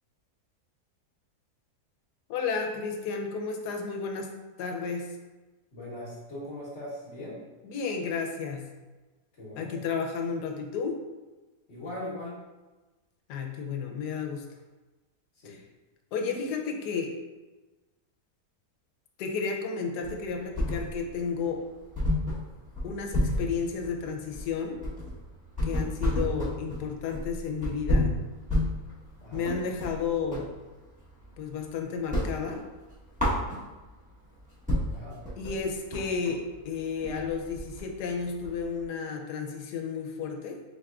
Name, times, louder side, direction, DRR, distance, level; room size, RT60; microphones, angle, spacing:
voice 1, 2.3-4.3 4.6-5.1 7.6-8.7 9.6-11.0 13.3-14.6 15.5-15.6 16.1-17.1 19.2-21.6 22.8-24.8 25.6-28.1 29.3-30.5 31.4-32.7 35.4-40.6, left 5 dB, 80° left, 3 dB, 1.2 m, -32 dB
voice 2, 5.7-7.4 9.3-9.8 11.7-12.4 15.3-15.6 29.2-29.5 34.9-35.2, left 1 dB, 50° left, -9 dB, 1.2 m, -40 dB
sound 1, 20.0-21.2 21.5-21.6 21.9-30.5 30.9-31.7 32.0-34.0 34.4-34.5 34.7-38.8, left 1 dB, 5° right, 0.7 m, -30 dB
4.3 x 3.5 x 2.3 m, 1.2 s
omnidirectional pair, 1.7 m